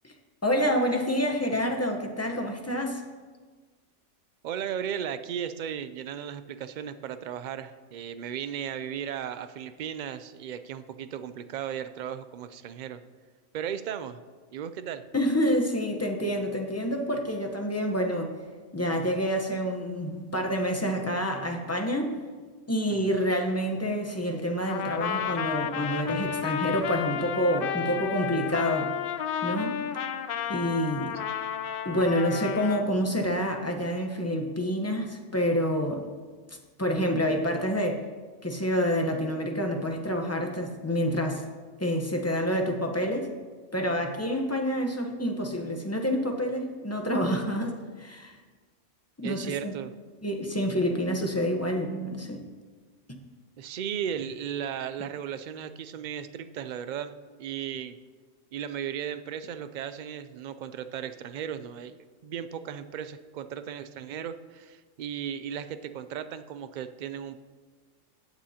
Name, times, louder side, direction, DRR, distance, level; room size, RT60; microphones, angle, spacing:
voice 1, 0.4-3.0 15.1-18.3 18.7-22.2 22.7-28.9 29.4-29.8 30.5-31.2 31.8-36.1 36.5-38.0 38.4-41.4 41.8-43.3 43.7-48.4 49.2-49.7 50.2-52.4 53.1-53.2, equal, 15° left, 3 dB, 0.9 m, -28 dB
voice 2, 4.4-13.0 13.5-14.2 14.5-15.0 23.0-23.1 49.2-49.9 53.6-57.1 57.4-58.0 58.5-67.4, right 9 dB, 70° right, 11 dB, 0.4 m, -36 dB
Trumpet, 24.6-32.9, left 9 dB, 60° left, 0.7 m, -32 dB
16.0 x 8.9 x 2.9 m, 1.4 s
omnidirectional pair, 1.3 m